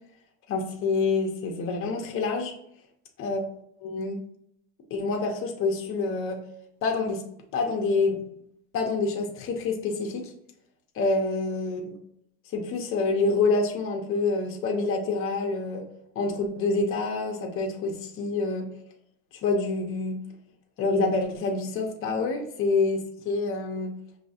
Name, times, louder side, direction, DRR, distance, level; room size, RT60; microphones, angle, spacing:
voice 1, 0.5-2.5 3.2-3.5 3.8-4.2 4.9-6.4 6.8-7.2 7.5-8.2 8.7-10.3 10.9-11.9 12.5-15.8 16.1-18.6 19.4-20.2 20.8-23.9, left 3 dB, 40° left, 2 dB, 0.8 m, -27 dB
5.2 x 2.8 x 2.8 m, 0.73 s
cardioid pair, 150°, 33 cm